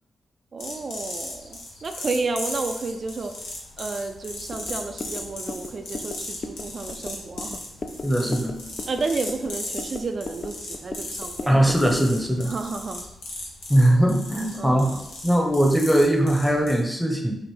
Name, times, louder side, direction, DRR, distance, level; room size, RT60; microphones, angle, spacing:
voice 1, 0.5-3.3 3.8-7.6 8.9-11.5 12.5-13.0 14.5-15.0, right 3 dB, 55° right, 6 dB, 0.3 m, -31 dB
sound 1, 0.6-16.8, left 2 dB, 85° left, 0.9 m, -37 dB
sound 2, 4.5-12.1, left 3 dB, 50° left, 0.4 m, -37 dB
voice 2, 8.0-8.6 11.5-12.5 13.7-15.0 15.2-17.4, right 1 dB, 5° left, 1 dB, 0.9 m, -20 dB
5.1 x 2.6 x 3.3 m, 0.88 s
supercardioid pair, 40°, 0 cm